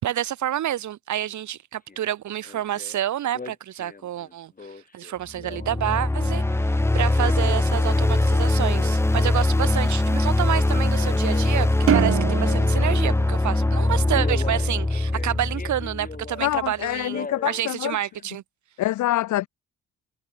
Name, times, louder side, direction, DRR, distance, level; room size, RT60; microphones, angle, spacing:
voice 1, 0.0-6.4 6.7-18.4, right 11 dB, 70° right, 3.6 m, -28 dB
Male speech man speaking, 1.9-2.1 2.4-3.0 3.3-6.6 7.0-8.4 8.6-9.5 10.6-13.0 13.4-13.7 14.1-16.5 17.0-17.7 18.2-18.3, left 4 dB, 30° left, 4.6 m, -40 dB
sound 1, 5.4-16.5, left 2 dB, 10° left, 0.9 m, -22 dB
sound 2, 11.9-14.4, right 11 dB, 50° right, 0.6 m, -26 dB
voice 2, 16.4-18.0 18.8-19.5, left 15 dB, 75° left, 0.8 m, -25 dB
cardioid pair, 90°, 30 cm